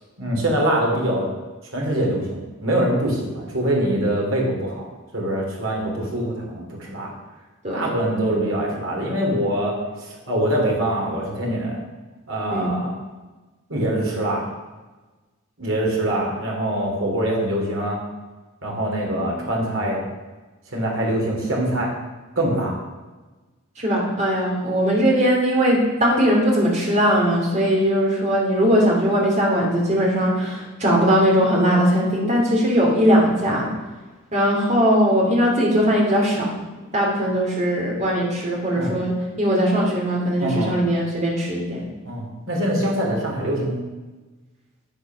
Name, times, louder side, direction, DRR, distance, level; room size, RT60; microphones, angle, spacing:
voice 1, 0.2-1.3 1.7-4.9 5.1-7.1 7.7-11.8 12.3-12.9 13.7-14.5 15.6-18.0 18.6-20.1 20.7-21.9 22.3-22.7 38.7-38.9 40.4-40.7 42.0-43.8, right 1 dB, 65° right, -1 dB, 3.4 m, -24 dB
voice 2, 23.8-33.7 34.3-36.6 36.9-41.9, equal, 30° right, -2 dB, 2.9 m, -20 dB
9.2 x 8.5 x 6.3 m, 1.2 s
head